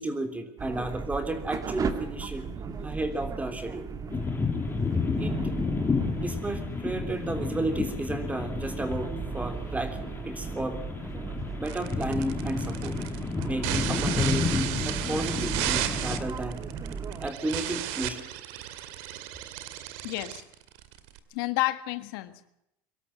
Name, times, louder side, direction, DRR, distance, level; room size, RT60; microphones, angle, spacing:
voice 1, 0.0-2.5 2.8-3.9 5.2-5.5 6.2-10.8 11.6-13.0 13.4-16.6 16.9-18.2, right 2 dB, 10° right, 8 dB, 3.5 m, -33 dB
sound 1, 0.6-17.3, right 5 dB, 30° right, 2.4 m, -37 dB
sound 2, 4.1-16.2, left 5 dB, 20° left, 2.5 m, -31 dB
sound 3, 11.6-21.2, right 12 dB, 75° right, 2.3 m, -34 dB
voice 2, 20.0-20.4 21.3-22.5, left 18 dB, 85° left, 11 dB, 1.6 m, -30 dB
24.5 x 13.0 x 8.9 m, 0.83 s
supercardioid pair, 120°, 12 cm